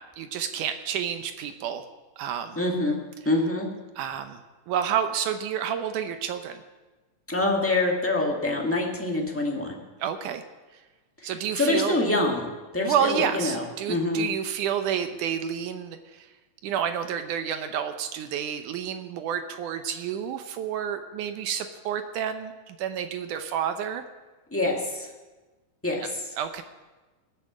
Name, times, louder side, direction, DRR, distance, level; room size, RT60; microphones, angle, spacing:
voice 1, 0.2-1.9 2.2-2.6 4.0-4.4 4.7-6.6 10.0-10.4 11.2-11.9 12.8-16.3 16.6-24.0 26.4-26.6, right 8 dB, 75° right, 8 dB, 2.2 m, -29 dB
voice 2, 2.5-3.0 3.2-3.7 7.3-9.8 11.2-11.3 11.6-14.3 24.5-25.1 25.8-26.3, left 2 dB, 5° left, -1 dB, 1.0 m, -26 dB
19.0 x 6.8 x 7.5 m, 1.2 s
omnidirectional pair, 3.8 m